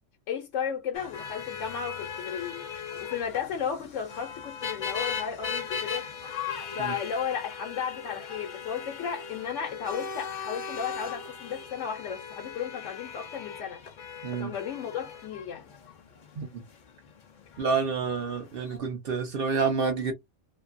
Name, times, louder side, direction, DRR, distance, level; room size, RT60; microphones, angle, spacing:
voice 1, 0.3-2.7 3.0-6.1 6.8-13.8 14.3-15.6, left 7 dB, 80° left, 1.0 m, -34 dB
sound 1, 0.9-18.8, left 6 dB, 50° left, 0.7 m, -39 dB
voice 2, 17.6-20.1, right 5 dB, 55° right, 0.8 m, -28 dB
2.7 x 2.5 x 2.5 m
omnidirectional pair, 1.3 m